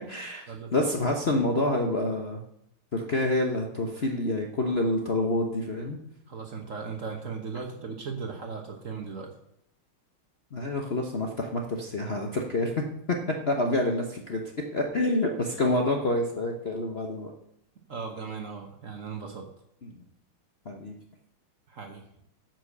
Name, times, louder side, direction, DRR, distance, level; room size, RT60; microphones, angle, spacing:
voice 1, 0.1-0.4 0.7-2.4 2.9-6.0 10.5-14.4 14.7-17.3 19.8-19.9 20.6-21.0, left 2 dB, 45° left, 2 dB, 0.9 m, -27 dB
voice 2, 6.3-9.3 15.6-15.7 17.9-19.4 21.7-22.0, right 5 dB, 45° right, 3 dB, 1.2 m, -37 dB
9.5 x 6.2 x 6.6 m, 0.75 s
omnidirectional pair, 2.3 m